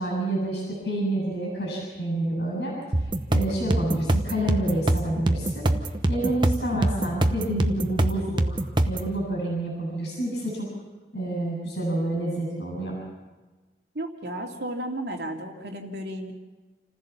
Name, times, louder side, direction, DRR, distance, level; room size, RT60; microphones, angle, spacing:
voice 1, 0.0-2.7 3.3-5.7 6.1-8.6 8.8-10.7 11.1-13.0, right 1 dB, 80° left, -1 dB, 7.7 m, -28 dB
sound 1, 2.9-9.1, right 1 dB, 25° right, 0.9 m, -24 dB
voice 2, 13.9-16.3, right 1 dB, 70° right, 1 dB, 2.7 m, -33 dB
28.0 x 15.0 x 7.3 m, 1.3 s
head